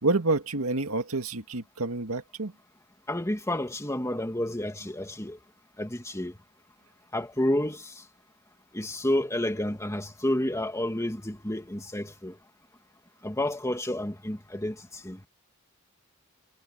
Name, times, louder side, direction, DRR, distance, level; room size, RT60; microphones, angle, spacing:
voice 1, 0.0-2.5, right 2 dB, 80° right, 2.1 m, -28 dB
voice 2, 3.1-5.4 5.8-6.3 7.1-7.9 8.7-12.3 13.2-14.8 15.0-15.2, left 1 dB, 15° left, 2.2 m, -30 dB
head